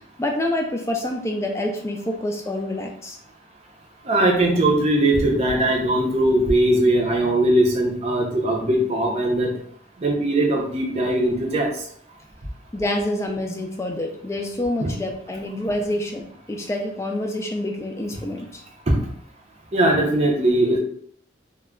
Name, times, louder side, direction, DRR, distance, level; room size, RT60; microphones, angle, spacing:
voice 1, 0.2-3.2 12.7-16.2 16.5-18.6, left 1 dB, 15° left, 2 dB, 0.3 m, -27 dB
voice 2, 4.1-9.5 10.0-11.7 14.8-15.0 18.9-19.0 19.7-20.8, right 1 dB, 35° right, 0 dB, 0.6 m, -20 dB
2.2 x 2.1 x 3.5 m, 0.64 s
head